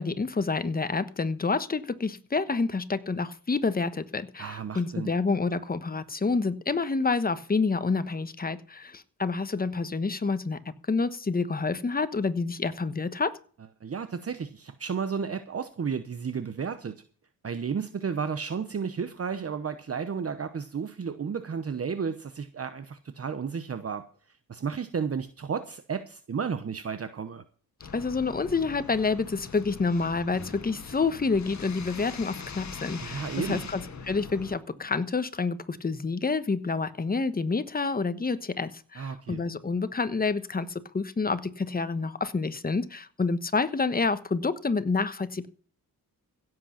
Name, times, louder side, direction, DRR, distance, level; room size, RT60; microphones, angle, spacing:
voice 1, 0.0-10.6 10.9-13.3 27.9-45.5, left 4 dB, 25° left, 13 dB, 1.1 m, -28 dB
voice 2, 4.4-5.1 13.8-16.9 17.4-24.0 24.5-27.4 33.0-33.7 39.0-39.4, right 6 dB, 40° right, 11 dB, 0.9 m, -33 dB
sound 1, 27.8-34.6, left 5 dB, 50° left, 1.6 m, -42 dB
16.0 x 7.8 x 5.8 m, 0.42 s
wide cardioid pair, 120°, 37 cm